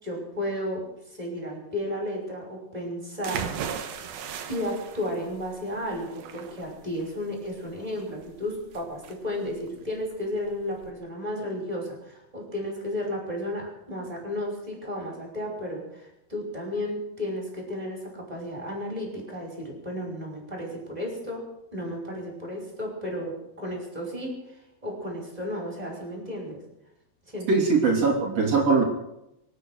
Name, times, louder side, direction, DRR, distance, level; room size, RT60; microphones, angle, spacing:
voice 1, 0.0-3.5 4.5-21.4 21.7-24.3 24.8-26.6 27.3-27.5, left 1 dB, 10° right, 0 dB, 5.6 m, -33 dB
sound 1, 3.2-10.9, right 8 dB, 75° right, 3.0 m, -38 dB
voice 2, 27.5-28.8, right 4 dB, 45° right, 1 dB, 3.5 m, -21 dB
24.5 x 9.3 x 6.4 m, 0.87 s
omnidirectional pair, 4.4 m